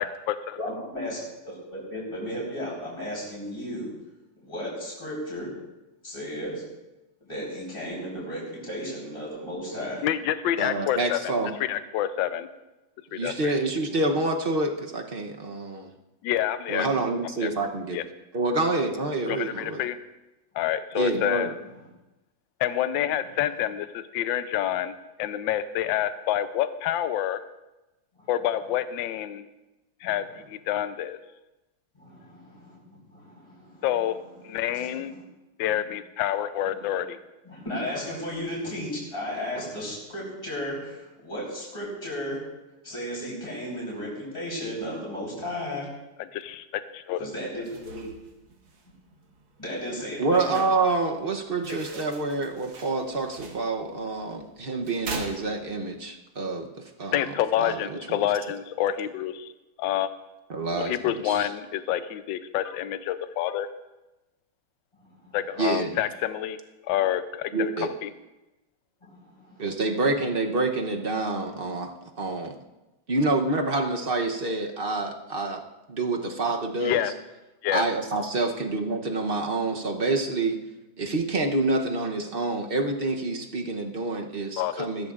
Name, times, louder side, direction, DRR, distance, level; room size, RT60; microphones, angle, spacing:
voice 1, 0.0-0.6 10.0-11.3 11.7-12.5 13.1-13.3 16.2-16.9 17.4-17.5 17.9-18.0 19.3-20.0 20.5-21.5 22.6-24.9 25.2-27.4 28.3-29.4 30.0-31.2 33.8-34.2 34.4-35.1 35.6-37.2 46.3-46.6 46.9-47.3 57.1-59.5 59.8-60.1 60.7-63.7 65.3-66.6 66.9-67.5 68.0-68.1 76.8-77.1 77.6-77.8 84.6-85.1, left 11 dB, 75° left, 11 dB, 1.3 m, -27 dB
voice 2, 0.6-3.9 4.4-5.5 6.0-6.6 7.2-10.1 13.9-14.0 28.2-28.3 30.0-30.1 31.9-33.9 34.5-35.2 35.7-35.8 36.7-36.9 37.4-42.4 42.8-45.9 47.2-48.0 49.6-50.6 65.0-65.4 69.0-69.8 76.2-76.3, equal, 15° left, -6 dB, 4.4 m, -35 dB
voice 3, 10.6-11.5 13.1-15.9 16.7-18.0 18.3-19.8 20.9-21.5 50.2-57.2 57.6-58.2 60.5-61.5 65.6-66.0 67.5-67.9 69.6-71.9 72.2-72.5 73.1-75.6 75.9-77.1 77.7-80.6 81.0-85.1, right 2 dB, 50° right, 3 dB, 0.6 m, -27 dB
sound 1, 47.5-56.0, right 3 dB, 70° right, 2.3 m, -43 dB
21.0 x 15.0 x 2.5 m, 1.0 s
omnidirectional pair, 2.3 m